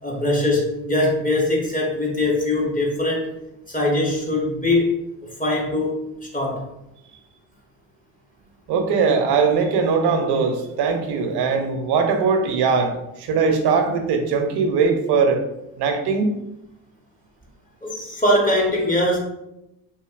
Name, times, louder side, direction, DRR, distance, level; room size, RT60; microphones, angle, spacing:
voice 1, 0.0-3.3 3.7-4.9 5.4-6.0 6.3-6.6 17.8-19.2, left 1 dB, 20° left, -2 dB, 1.0 m, -21 dB
voice 2, 8.7-15.4 15.8-16.3, right 5 dB, 65° right, 5 dB, 0.6 m, -20 dB
2.8 x 2.7 x 2.4 m, 0.89 s
hypercardioid pair, 55°, 44 cm